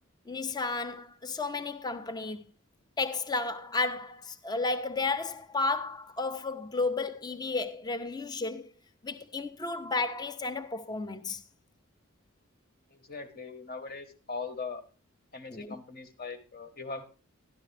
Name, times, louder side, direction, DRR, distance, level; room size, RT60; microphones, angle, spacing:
voice 1, 0.3-2.4 3.0-8.7 9.0-11.4 15.5-15.7, left 3 dB, 20° left, 0.6 m, -32 dB
voice 2, 12.9-14.8 15.3-17.0, left 4 dB, 45° left, 1.3 m, -40 dB
12.5 x 11.0 x 3.3 m
head